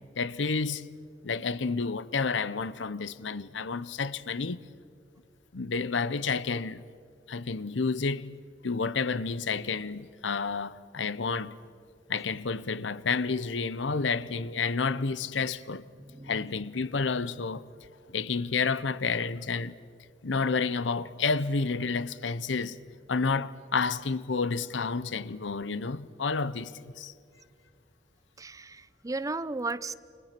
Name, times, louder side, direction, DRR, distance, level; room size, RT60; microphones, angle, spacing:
voice 1, 0.2-1.0 1.2-4.6 5.5-6.8 7.3-11.5 12.1-15.9 16.2-17.6 18.1-19.8 20.2-22.8 23.1-27.1, left 4 dB, 85° left, 0.8 m, -30 dB
voice 2, 16.0-16.4 28.4-29.9, right 3 dB, 20° right, 0.6 m, -35 dB
30.0 x 25.5 x 6.0 m
head